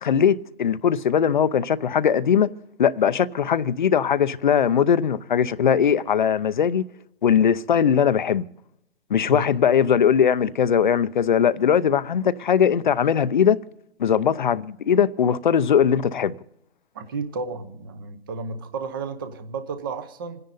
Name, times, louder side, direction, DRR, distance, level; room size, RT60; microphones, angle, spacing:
voice 1, 0.0-2.5 2.8-6.8 7.2-8.4 9.1-13.6 14.0-16.3, left 8 dB, 45° left, 0.6 m, -20 dB
voice 2, 16.9-20.4, right 4 dB, 20° right, 0.7 m, -32 dB
27.0 x 10.5 x 4.1 m
hypercardioid pair, 165°, 34 cm